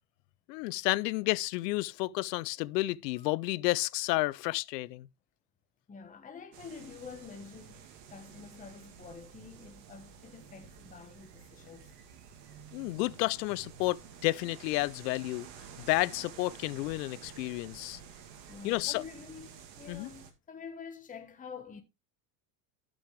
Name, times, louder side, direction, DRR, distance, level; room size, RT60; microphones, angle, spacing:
voice 1, 0.5-5.1 12.7-15.5 15.8-18.0 18.6-19.0 19.9-20.1, left 20 dB, 80° left, 0.6 m, -31 dB
voice 2, 5.9-11.9 18.1-21.8, left 5 dB, 15° left, 1.3 m, -48 dB
sound 1, 6.5-20.3, right 7 dB, 60° right, 2.1 m, -51 dB
12.5 x 6.2 x 3.3 m
supercardioid pair, 120°, 49 cm